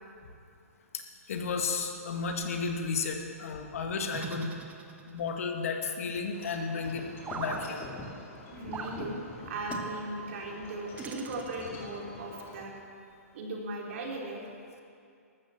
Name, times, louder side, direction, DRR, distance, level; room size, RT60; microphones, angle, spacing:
voice 1, 0.9-4.5 5.1-7.1 7.3-7.9, left 5 dB, 65° left, 4 dB, 1.9 m, -33 dB
sound 1, 4.1-5.3 7.2-7.7 8.7-9.0 9.7-9.9 11.0-11.8, right 5 dB, 20° right, 1.1 m, -40 dB
Wind chime / Wind, 6.3-12.6, left 3 dB, 25° left, 2.4 m, -45 dB
voice 2, 8.5-12.7 13.3-14.5, right 2 dB, 55° right, -1 dB, 3.7 m, -38 dB
13.0 x 13.0 x 7.1 m, 2.5 s
hypercardioid pair, 125°, 8 cm